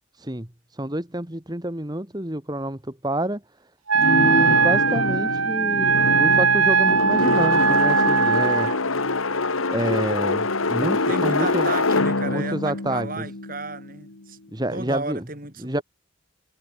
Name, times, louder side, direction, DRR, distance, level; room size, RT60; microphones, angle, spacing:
voice 1, 0.1-3.4 3.9-8.7 9.7-11.7 12.2-13.2 14.5-15.2 15.6-15.8, right 1 dB, 20° right, 1.8 m, -28 dB
Wind instrument woodwind instrument, 3.9-8.8, right 5 dB, 90° right, 3.3 m, -20 dB
sound 1, 4.0-14.0, left 3 dB, 85° left, 2.0 m, -25 dB
voice 2, 11.1-14.4 14.7-15.8, right 3 dB, 40° right, 6.1 m, -33 dB
head